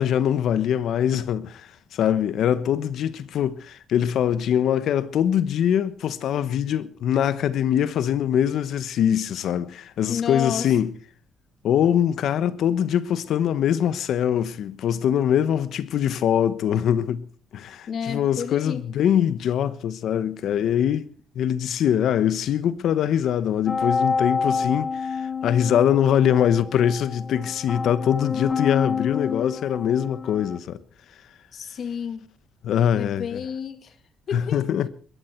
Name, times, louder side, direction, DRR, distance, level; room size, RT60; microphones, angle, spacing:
voice 1, 0.0-10.9 11.6-17.2 17.5-21.1 21.3-30.8 32.6-33.4 34.3-34.9, left 9 dB, 75° left, 1.1 m, -23 dB
voice 2, 10.1-10.7 17.9-18.8 31.5-32.3 32.9-34.0 34.3-34.7, left 7 dB, 60° left, 2.3 m, -31 dB
sound 1, 23.7-30.6, left 5 dB, 35° left, 0.7 m, -28 dB
21.0 x 15.0 x 4.6 m
cardioid pair, 90°, 0 cm